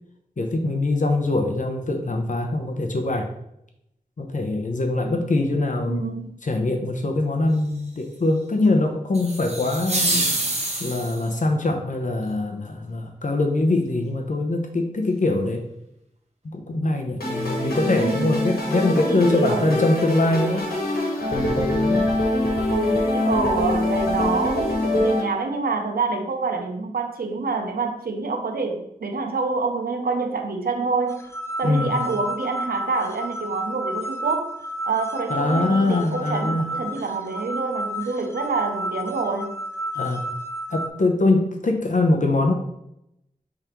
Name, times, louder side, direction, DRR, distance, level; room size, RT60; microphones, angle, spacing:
voice 1, 0.4-3.3 4.2-6.1 6.4-10.2 10.8-15.6 16.4-20.8 21.3-22.1 31.6-31.9 35.3-36.7 39.9-40.2 40.7-42.5, left 2 dB, 55° left, 3 dB, 0.7 m, -23 dB
voice 2, 5.9-6.4 18.0-18.4 19.0-19.7 22.7-31.3 31.6-34.6 34.8-39.6, right 4 dB, 75° right, 4 dB, 0.6 m, -27 dB
sound 1, 9.1-11.3, right 2 dB, 45° right, 0.9 m, -26 dB
sound 2, 17.2-25.2, left 1 dB, 85° left, 1.3 m, -24 dB
sound 3, 31.1-40.9, equal, 20° left, 0.6 m, -31 dB
4.8 x 3.5 x 2.9 m, 0.79 s
wide cardioid pair, 50°, 16 cm